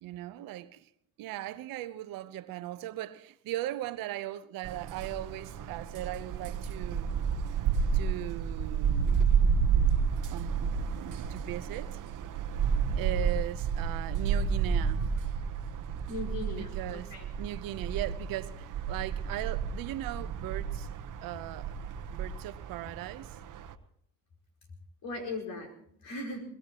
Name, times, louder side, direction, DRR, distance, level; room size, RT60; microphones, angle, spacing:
voice 1, 0.0-0.9 1.2-7.2 7.9-9.3 10.3-11.9 13.0-15.1 16.5-20.9 21.2-21.7 22.1-23.4, right 14 dB, 90° right, 0.9 m, -38 dB
sound 1, 4.6-23.7, right 6 dB, 65° right, 1.1 m, -31 dB
voice 2, 16.1-17.2 25.0-26.4, left 2 dB, 75° left, 5.0 m, -38 dB
22.0 x 22.0 x 3.0 m
cardioid pair, 85°, 33 cm